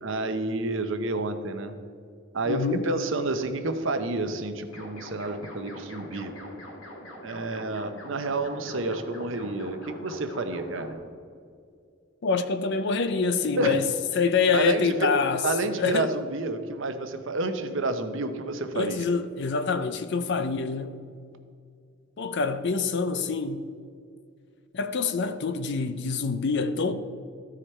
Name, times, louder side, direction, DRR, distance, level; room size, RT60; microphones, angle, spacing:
voice 1, 0.0-1.8 2.3-6.3 7.2-11.0 13.6-13.8 14.5-15.1 15.4-19.1, right 2 dB, 65° right, 0.8 m, -29 dB
voice 2, 2.5-2.9 12.2-13.9 14.1-15.4 15.8-16.1 18.7-21.0 22.2-23.6 24.7-26.9, left 4 dB, 55° left, 0.5 m, -26 dB
sound 1, 4.7-11.0, left 1 dB, 85° left, 2.1 m, -43 dB
14.0 x 5.0 x 4.3 m
head